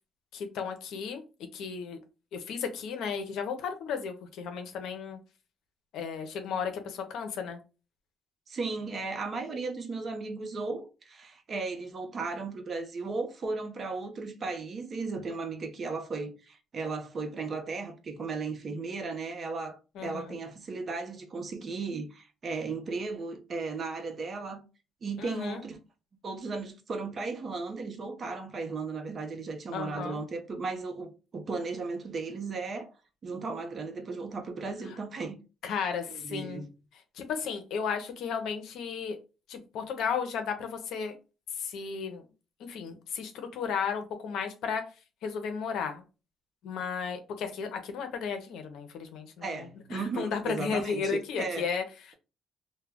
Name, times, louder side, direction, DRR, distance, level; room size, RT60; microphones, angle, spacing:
voice 1, 0.3-1.2 1.5-2.0 2.3-5.2 5.9-7.6 20.0-20.4 25.2-25.6 29.7-30.2 35.6-36.6 37.1-39.2 39.5-41.2 41.6-42.2 42.6-44.9 45.2-46.0 46.6-52.1, left 6 dB, 80° left, 0.6 m, -34 dB
voice 2, 8.5-24.6 25.0-25.8 26.2-32.9 33.2-35.4 35.6-35.7 36.1-36.7 49.4-51.7, right 4 dB, 45° right, 0.6 m, -36 dB
2.2 x 2.1 x 3.4 m
cardioid pair, 90°, 0 cm